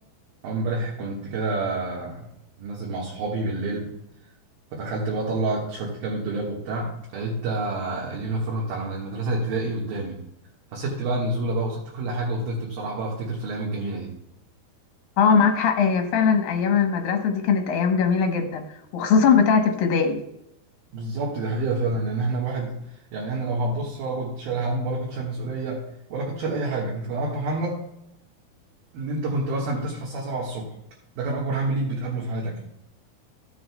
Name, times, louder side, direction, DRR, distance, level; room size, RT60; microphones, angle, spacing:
voice 1, 0.4-2.3 2.6-3.9 4.7-10.2 10.7-14.1 20.9-25.8 26.1-27.9 28.9-30.7 31.2-32.6, right 2 dB, 65° right, -4 dB, 3.1 m, -28 dB
voice 2, 15.2-18.6 18.9-20.2, left 6 dB, 70° left, 4 dB, 2.5 m, -20 dB
16.0 x 7.7 x 2.2 m, 0.83 s
omnidirectional pair, 4.8 m